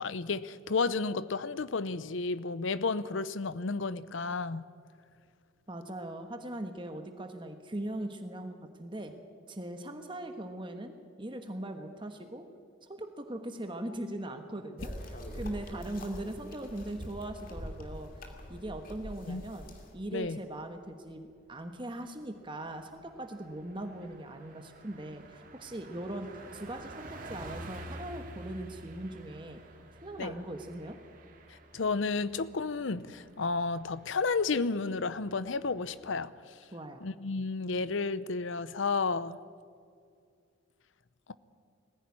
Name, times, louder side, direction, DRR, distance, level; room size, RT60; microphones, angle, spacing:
voice 1, 0.0-4.6 19.3-19.4 20.1-20.4 30.2-30.3 31.5-36.3 37.0-39.4, left 4 dB, 75° left, 16 dB, 0.7 m, -32 dB
voice 2, 5.7-9.1 9.5-12.4 12.9-18.1 18.5-29.6 30.0-31.0 36.7-37.0, right 1 dB, 25° right, 6 dB, 1.3 m, -40 dB
sound 1, 14.8-19.9, equal, 45° left, 2.6 m, -43 dB
Car passing by, 20.8-21.2 21.6-21.7 22.0-36.3, right 2 dB, 45° right, 2.1 m, -50 dB
20.0 x 15.5 x 9.8 m, 2.3 s
head